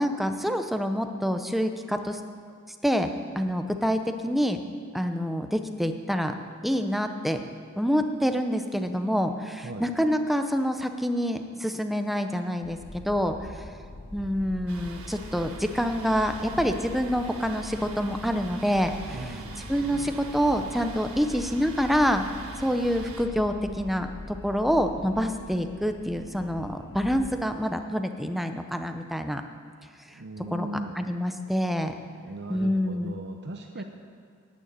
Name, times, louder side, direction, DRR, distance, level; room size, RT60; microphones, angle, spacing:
voice 1, 0.0-2.2 2.8-3.1 3.4-4.6 4.9-6.3 6.6-7.4 7.8-13.6 14.1-19.2 19.6-22.2 22.6-29.4 30.5-30.7 31.0-31.9 32.5-33.2, equal, ahead, 6 dB, 0.7 m, -27 dB
sound 1, 12.6-27.4, left 1 dB, 55° left, 1.1 m, -43 dB
Thunder, 14.7-23.2, right 3 dB, 80° right, 1.5 m, -45 dB
voice 2, 19.1-19.7 30.1-31.0 32.2-33.8, right 1 dB, 55° right, 4 dB, 0.7 m, -38 dB
10.5 x 9.4 x 8.9 m, 2.2 s
head